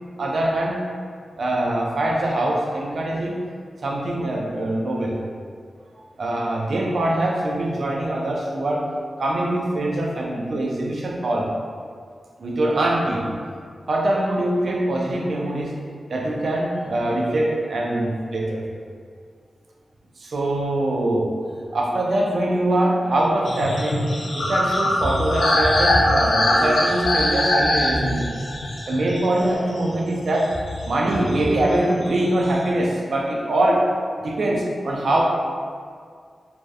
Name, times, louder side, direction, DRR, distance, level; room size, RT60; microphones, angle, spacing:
voice 1, 0.2-0.9 1.4-3.5 3.8-5.2 6.2-8.9 9.2-11.5 12.4-13.3 13.9-15.8 16.1-18.6 20.2-21.4 21.7-24.1 24.3-28.3 28.9-30.5 30.9-33.9 34.2-35.2, right 1 dB, 65° right, -1 dB, 0.3 m, -23 dB
sound 1, 23.5-29.9 30.4-31.8 32.0-32.6, left 1 dB, 70° left, 0.4 m, -22 dB
2.7 x 2.0 x 2.3 m, 2.1 s
wide cardioid pair, 125°, 0 cm